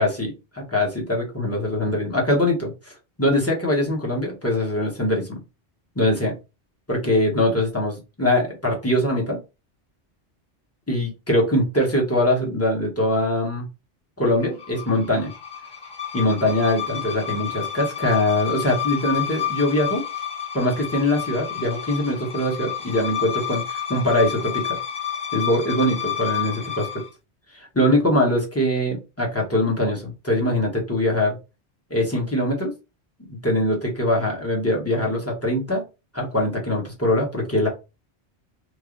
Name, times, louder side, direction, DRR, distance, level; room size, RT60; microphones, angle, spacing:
voice 1, 0.0-0.3 0.7-5.4 5.9-6.3 6.9-9.4 10.9-13.6 14.2-15.3 16.1-20.0 20.5-24.8 25.3-26.9 27.5-31.4 31.9-32.7 33.4-35.8 36.1-37.7, left 1 dB, 15° left, -2 dB, 1.0 m, -22 dB
sound 1, 14.4-27.1, left 9 dB, 35° left, 0.5 m, -30 dB
3.2 x 2.1 x 3.7 m, 0.28 s
omnidirectional pair, 1.2 m